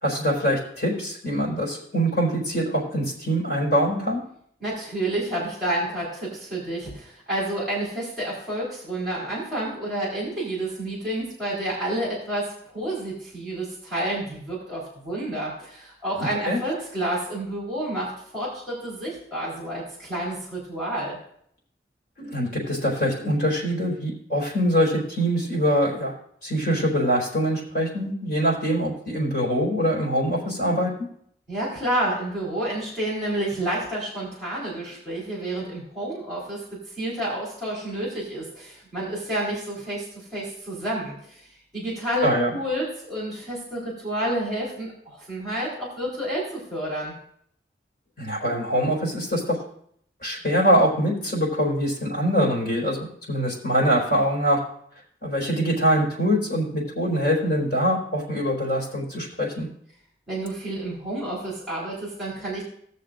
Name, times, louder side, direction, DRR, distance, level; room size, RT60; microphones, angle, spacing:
voice 1, 0.0-4.2 16.2-16.6 22.2-26.1 26.4-30.9 42.2-42.6 48.2-49.6 50.2-53.0 53.3-54.6 55.2-59.7, equal, 55° left, -3 dB, 4.3 m, -23 dB
voice 2, 4.6-21.2 31.5-36.6 37.0-41.4 41.7-47.1 60.3-62.6, right 1 dB, ahead, -8 dB, 4.1 m, -29 dB
18.5 x 6.7 x 2.6 m, 0.66 s
head